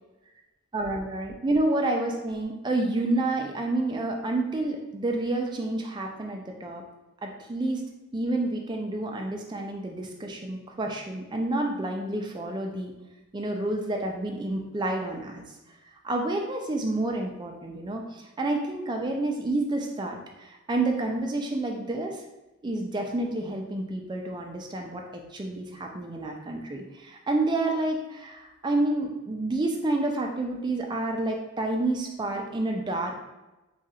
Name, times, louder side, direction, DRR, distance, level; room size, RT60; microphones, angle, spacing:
voice 1, 0.7-6.8 7.2-7.9 8.1-12.9 13.3-15.5 16.0-22.2 22.6-33.2, right 2 dB, 20° right, 1 dB, 0.4 m, -29 dB
2.8 x 2.5 x 4.1 m, 1.0 s
head